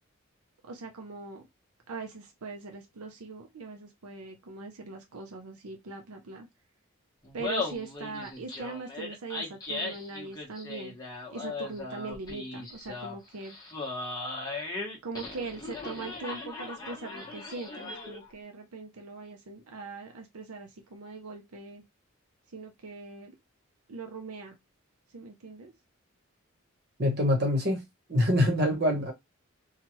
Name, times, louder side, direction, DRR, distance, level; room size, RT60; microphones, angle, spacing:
voice 1, 0.7-1.5 1.9-6.5 7.3-10.9 11.3-13.6 15.0-21.8 22.5-23.3 23.9-24.6 25.1-25.7, right 3 dB, 90° right, 0.6 m, -41 dB
Laughter, 7.2-18.3, left 3 dB, 15° left, 1.0 m, -38 dB
voice 2, 27.0-27.8 28.1-29.1, left 1 dB, 45° right, 1.1 m, -24 dB
3.0 x 2.3 x 3.0 m
head